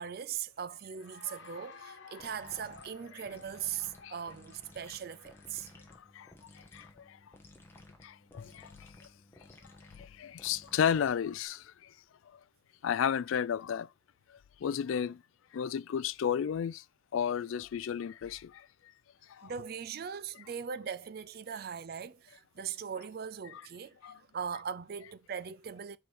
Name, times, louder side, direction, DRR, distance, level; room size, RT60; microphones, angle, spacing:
voice 1, 0.0-5.7 19.4-26.0, right 7 dB, 50° right, 0.4 m, -40 dB
Cheering / Applause, 0.9-6.1, left 4 dB, 65° left, 1.5 m, -53 dB
sound 1, 2.2-11.5, left 1 dB, 10° left, 1.2 m, -56 dB
voice 2, 8.0-8.7 10.0-11.6 12.8-13.9 14.6-15.2 15.5-16.8 17.1-18.6 19.4-19.5 23.5-23.6 24.0-24.2, left 8 dB, 80° left, 0.3 m, -32 dB
5.1 x 4.9 x 6.3 m
head